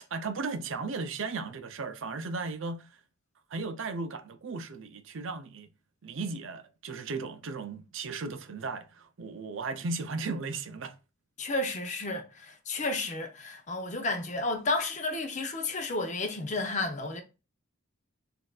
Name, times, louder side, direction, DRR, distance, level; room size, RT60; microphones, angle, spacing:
voice 1, 0.1-2.9 3.5-5.7 6.0-10.9, right 3 dB, 60° right, 0.5 m, -36 dB
voice 2, 11.4-17.2, left 2 dB, 35° left, 0.7 m, -32 dB
6.3 x 2.6 x 2.4 m
head